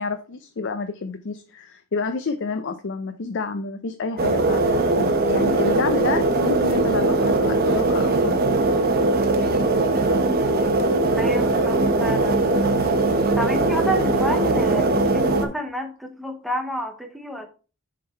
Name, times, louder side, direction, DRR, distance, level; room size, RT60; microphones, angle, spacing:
voice 1, 0.0-8.7, left 4 dB, 55° left, 7 dB, 0.5 m, -29 dB
sound 1, 4.2-15.5, right 2 dB, 45° right, 0.9 m, -20 dB
voice 2, 11.2-12.5 13.4-17.5, equal, ahead, 5 dB, 0.9 m, -29 dB
6.9 x 3.8 x 4.4 m, 0.36 s
head